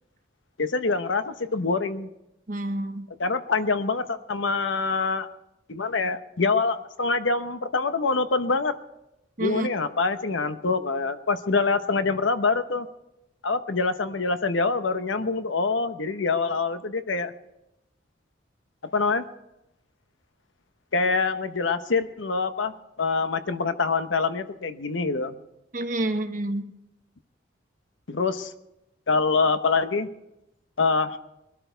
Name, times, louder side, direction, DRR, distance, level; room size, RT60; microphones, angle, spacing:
voice 1, 0.6-2.1 3.2-5.3 5.7-8.7 9.4-12.9 13.4-17.3 18.9-19.2 20.9-22.7 23.0-25.3 28.1-28.5 29.1-30.1 30.8-31.2, left 4 dB, 90° left, 1.0 m, -25 dB
voice 2, 2.5-3.1 9.4-9.7 25.7-26.7, right 1 dB, 45° right, 1.1 m, -28 dB
22.0 x 12.5 x 4.6 m
head